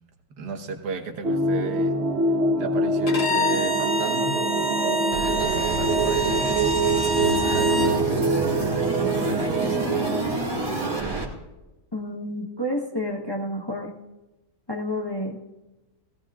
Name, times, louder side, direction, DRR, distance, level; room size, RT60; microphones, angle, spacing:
voice 1, 0.4-2.0 2.6-6.6 7.1-9.9, right 4 dB, 70° right, 5 dB, 1.8 m, -34 dB
sound 1, 1.2-10.2, right 2 dB, 45° right, 1.2 m, -24 dB
Bowed string instrument, 3.1-8.0, equal, 65° left, 2.0 m, -27 dB
sound 2, 5.1-11.3, right 2 dB, 20° right, 1.8 m, -29 dB
voice 2, 11.9-13.9 14.7-15.6, left 1 dB, 20° left, 0 dB, 0.9 m, -30 dB
17.5 x 16.0 x 2.4 m, 1.0 s
omnidirectional pair, 1.9 m